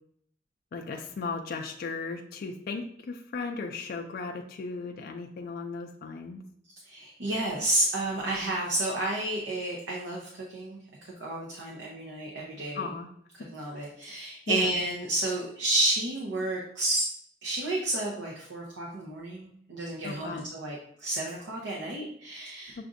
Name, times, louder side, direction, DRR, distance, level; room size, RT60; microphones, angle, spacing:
voice 1, 0.7-6.4 12.7-13.1 13.4-13.5 13.8-13.9 14.5-14.7 20.0-20.4 22.8-22.9, left 4 dB, 55° left, 3 dB, 0.3 m, -36 dB
voice 2, 6.8-12.8 13.5-17.1 17.4-22.8, right 2 dB, 85° right, -3 dB, 0.7 m, -31 dB
5.9 x 2.5 x 2.5 m, 0.67 s
head